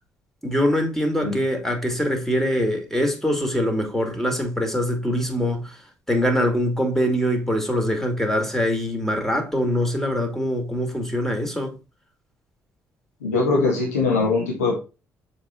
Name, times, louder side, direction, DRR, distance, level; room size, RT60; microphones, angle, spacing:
voice 1, 0.4-5.7 6.1-11.7, equal, 5° left, 2.4 m, -23 dB
voice 2, 13.2-14.8, left 3 dB, 85° left, 1.4 m, -21 dB
7.1 x 3.7 x 4.4 m
hypercardioid pair, 45°, 8 cm